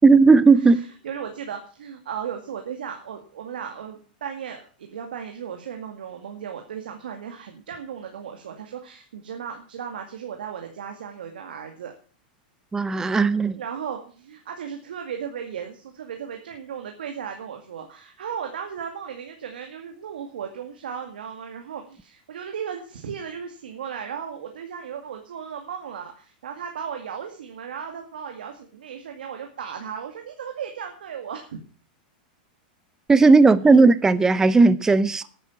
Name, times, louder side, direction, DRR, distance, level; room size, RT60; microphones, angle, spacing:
voice 1, 0.0-0.8 12.7-13.6 33.1-35.2, right 4 dB, 10° right, 0.6 m, -15 dB
voice 2, 0.5-11.9 13.5-31.6 33.6-33.7, right 7 dB, 90° right, 2.2 m, -36 dB
11.0 x 9.9 x 7.3 m
hypercardioid pair, 125°, 5 cm